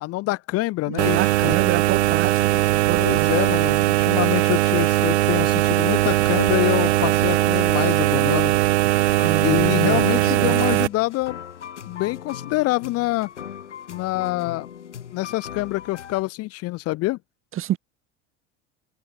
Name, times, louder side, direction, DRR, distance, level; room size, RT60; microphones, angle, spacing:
voice 1, 0.0-1.6 2.5-2.6 3.0-8.6 9.4-11.4 11.8-13.3 13.9-14.7 15.1-17.2, left 19 dB, 40° left, 1.0 m, -25 dB
voice 2, 0.9-2.4 2.7-3.3 9.2-10.6 17.5-17.8, right 12 dB, 35° right, 2.1 m, -28 dB
sound 1, 1.0-10.9, right 16 dB, 65° right, 0.7 m, -20 dB
sound 2, 9.0-16.2, left 8 dB, 80° left, 0.9 m, -38 dB
figure-of-eight pair, 70°, 35 cm